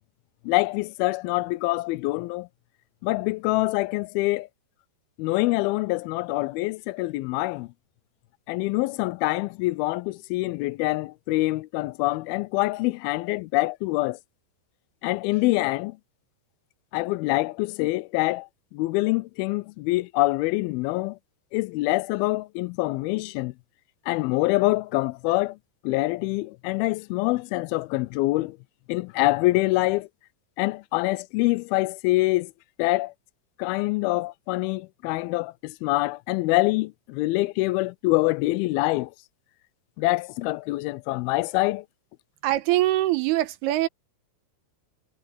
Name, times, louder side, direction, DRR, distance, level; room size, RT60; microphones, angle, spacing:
voice 1, 0.4-2.5 3.0-4.5 5.2-7.7 8.5-14.2 15.0-16.0 16.9-21.2 21.5-23.5 24.1-25.6 25.8-28.6 28.9-30.1 30.6-32.5 32.8-33.1 33.6-39.1 40.0-41.9, left 21 dB, 80° left, 2.3 m, -25 dB
voice 2, 42.4-43.9, right 16 dB, 85° right, 2.9 m, -23 dB
omnidirectional pair, 4.6 m